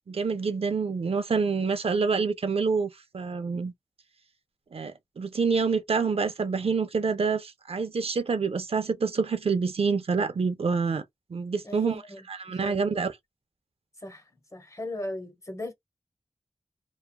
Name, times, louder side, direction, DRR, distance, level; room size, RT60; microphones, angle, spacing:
voice 1, 0.1-3.7 4.7-11.0 11.3-12.0 12.3-13.2, right 5 dB, 60° right, 0.5 m, -27 dB
voice 2, 11.6-13.0 14.0-15.7, left 1 dB, 30° left, 1.0 m, -38 dB
3.0 x 2.3 x 2.2 m
wide cardioid pair, 75°, 11 cm